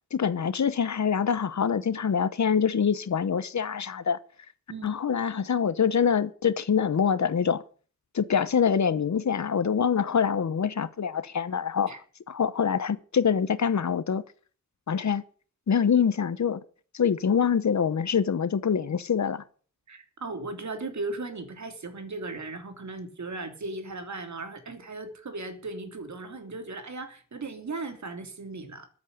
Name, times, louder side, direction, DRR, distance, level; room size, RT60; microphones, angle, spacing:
voice 1, 0.1-4.2 4.8-7.6 8.1-12.0 12.3-14.2 14.9-15.2 15.7-16.6 16.9-19.4, left 7 dB, 60° left, 1.1 m, -25 dB
voice 2, 19.9-28.9, right 3 dB, 60° right, 3.1 m, -37 dB
14.0 x 8.4 x 9.9 m
wide cardioid pair, 130°, 32 cm